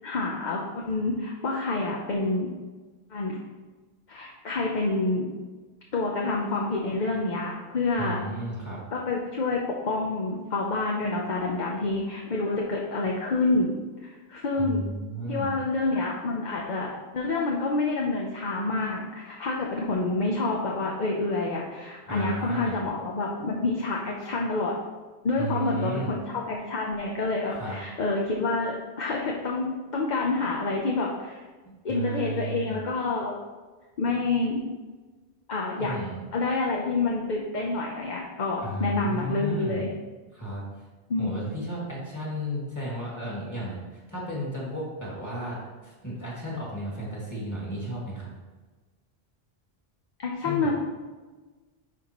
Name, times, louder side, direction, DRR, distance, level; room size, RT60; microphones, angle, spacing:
voice 1, 0.0-2.5 3.1-3.4 4.1-5.3 5.9-8.2 8.9-9.6 9.9-14.8 15.3-24.8 25.2-31.4 31.8-33.4 34.0-34.6 35.5-35.9 36.3-39.9 41.1-41.3 50.2-50.7, left 3 dB, 50° left, -2 dB, 0.8 m, -28 dB
voice 2, 8.0-8.8 14.6-15.5 22.1-22.8 25.4-26.1 27.5-27.8 31.6-32.8 35.8-36.2 38.6-39.8 40.3-40.7 41.2-48.3 50.4-50.7, right 1 dB, 15° left, -5 dB, 2.1 m, -34 dB
10.5 x 4.2 x 3.0 m, 1.3 s
omnidirectional pair, 1.1 m